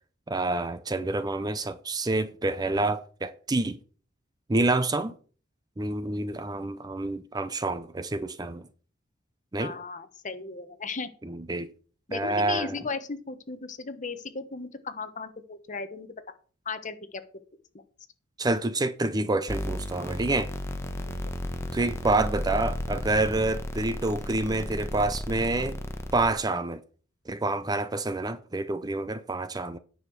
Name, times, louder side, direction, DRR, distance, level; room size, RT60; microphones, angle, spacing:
voice 1, 0.3-3.8 4.5-5.1 5.8-8.7 9.5-9.7 11.2-11.7 12.1-12.8 18.4-20.5 21.7-25.8 26.1-26.8 27.3-29.8, right 2 dB, 20° right, 0.5 m, -28 dB
voice 2, 9.6-11.1 12.1-16.1 16.6-17.2, left 4 dB, 40° left, 1.1 m, -36 dB
sound 1, 19.5-26.3, left 1 dB, 15° left, 1.1 m, -34 dB
9.7 x 6.4 x 5.9 m
head